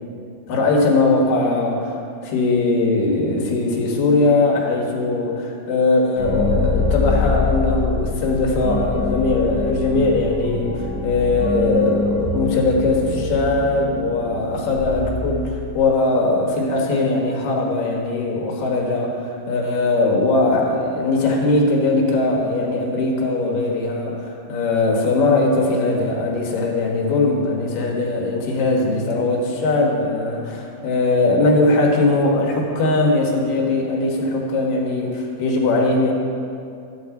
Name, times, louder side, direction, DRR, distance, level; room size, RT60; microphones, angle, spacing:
voice 1, 0.5-36.1, left 2 dB, 80° left, -1 dB, 3.1 m, -20 dB
sound 1, 6.2-15.8, left 4 dB, 50° left, 2.4 m, -24 dB
13.5 x 4.8 x 7.7 m, 2.5 s
omnidirectional pair, 3.9 m